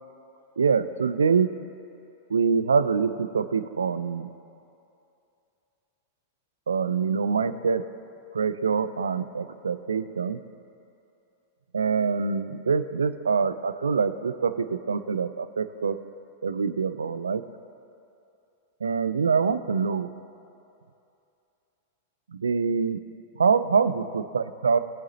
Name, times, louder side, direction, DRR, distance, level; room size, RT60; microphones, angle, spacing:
voice 1, 0.6-1.5 2.3-4.3 6.7-7.8 8.3-10.4 11.7-16.0 16.4-17.4 18.8-20.1 22.3-23.0 23.4-24.8, right 5 dB, 80° right, 12 dB, 0.4 m, -25 dB
18.0 x 8.4 x 2.8 m, 2.7 s
figure-of-eight pair, 95°, 0 cm